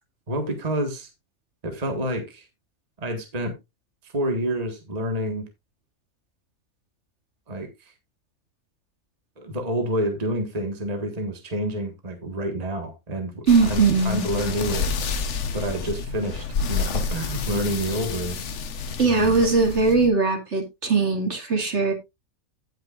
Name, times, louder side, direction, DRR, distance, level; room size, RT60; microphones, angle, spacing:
voice 1, 0.3-1.1 1.6-2.5 3.0-3.5 4.0-5.5 7.5-7.9 9.4-15.0 15.5-18.4 19.1-19.4, right 1 dB, 30° right, 1.6 m, -28 dB
sound 1, 13.5-20.1, left 5 dB, 60° left, 1.2 m, -29 dB
voice 2, 13.5-14.2 19.0-21.9, right 4 dB, 50° right, 2.4 m, -20 dB
17.0 x 5.7 x 2.4 m
omnidirectional pair, 1.5 m